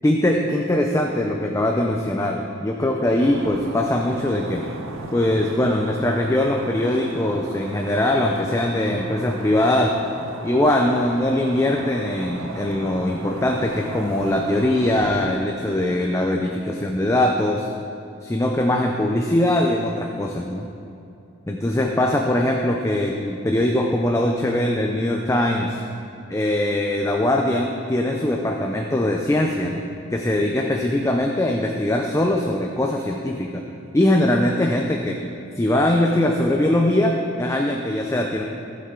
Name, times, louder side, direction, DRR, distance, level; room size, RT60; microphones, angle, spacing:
voice 1, 0.0-4.6 5.1-9.9 10.4-17.7 18.2-20.7 21.5-25.8 26.3-29.8 30.1-33.6 33.9-35.2 35.6-38.4, left 1 dB, 15° left, 1 dB, 0.4 m, -21 dB
sound 1, 3.2-15.1, right 2 dB, 75° right, 0.8 m, -36 dB
15.5 x 5.6 x 3.8 m, 2.7 s
head